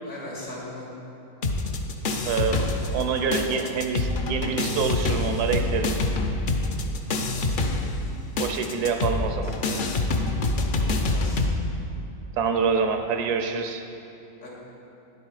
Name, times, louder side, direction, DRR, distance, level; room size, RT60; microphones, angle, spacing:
voice 1, 0.0-0.9 9.2-9.3 9.6-10.3 11.1-11.4 14.4-14.5, left 1 dB, 75° left, -5 dB, 3.1 m, -39 dB
sound 1, 1.4-3.1 3.3-11.5, left 2 dB, 55° left, 0.5 m, -26 dB
voice 2, 2.3-5.9 8.4-9.5 12.4-13.8, right 5 dB, 85° right, 6 dB, 1.3 m, -26 dB
10.5 x 8.0 x 4.8 m, 2.9 s
omnidirectional pair, 1.6 m